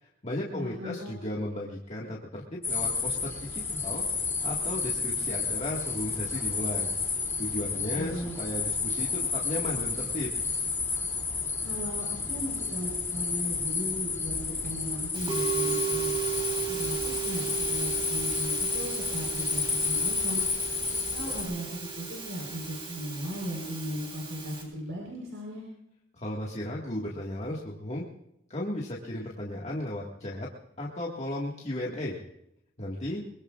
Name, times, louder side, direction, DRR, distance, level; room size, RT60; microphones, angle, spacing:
voice 1, 0.0-4.0 4.4-6.9 7.4-10.3 26.1-28.0 28.5-30.5 30.8-32.2 32.8-33.2, left 1 dB, 35° left, -3 dB, 1.8 m, -35 dB
voice 2, 0.5-1.1 7.9-8.4 11.6-16.2 16.7-20.5 20.9-25.6, equal, 85° right, -2 dB, 4.3 m, -37 dB
sound 1, 2.6-21.4, left 4 dB, 15° left, 2.9 m, -31 dB
Musical instrument, 15.1-24.6, right 7 dB, 25° right, 3.5 m, -35 dB
23.5 x 22.5 x 2.5 m, 0.81 s
head